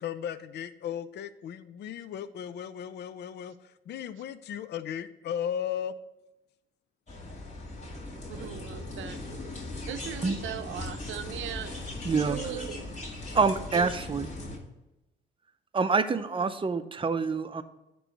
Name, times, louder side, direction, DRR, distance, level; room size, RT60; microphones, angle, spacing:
voice 1, 0.0-5.9, left 9 dB, 60° left, 13 dB, 0.4 m, -36 dB
sound 1, 7.1-14.6, left 2 dB, 35° left, 2.3 m, -39 dB
voice 2, 8.3-9.2 9.9-11.8 12.1-12.9 13.7-13.9, right 10 dB, 75° right, 9 dB, 0.7 m, -38 dB
voice 3, 12.0-12.4 13.3-14.3 15.7-17.6, right 5 dB, 25° right, 10 dB, 0.6 m, -26 dB
8.9 x 3.1 x 6.5 m, 0.94 s
cardioid pair, 90°, 20 cm